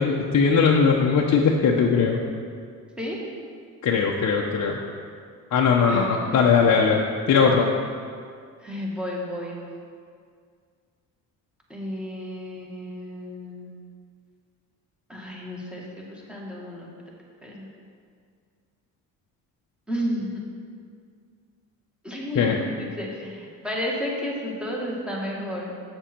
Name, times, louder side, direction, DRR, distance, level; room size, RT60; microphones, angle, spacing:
voice 1, 0.0-2.2 3.8-4.8 5.5-7.0 7.3-7.7 22.3-22.6, left 5 dB, 50° left, -1 dB, 0.8 m, -19 dB
voice 2, 5.9-6.7 8.6-9.6 11.7-13.7 15.1-16.9 17.4-17.7 19.9-20.4 22.0-25.7, equal, 5° right, -3 dB, 1.9 m, -32 dB
7.6 x 7.0 x 4.4 m, 2.1 s
cardioid pair, 85°, 36 cm